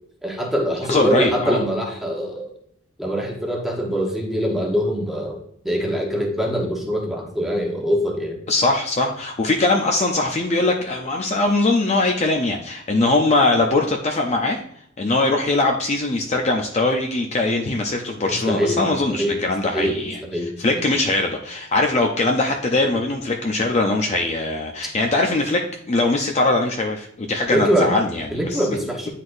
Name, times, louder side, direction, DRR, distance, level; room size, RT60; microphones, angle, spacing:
voice 1, 0.2-2.5 3.0-5.4 5.6-8.4 18.3-19.4 19.7-20.5 27.5-27.9 28.3-29.1, equal, ahead, -1 dB, 1.1 m, -23 dB
voice 2, 0.9-1.6 8.5-14.6 15.0-20.2 20.6-28.7, left 2 dB, 30° left, 2 dB, 0.5 m, -21 dB
9.3 x 4.1 x 2.6 m, 0.68 s
head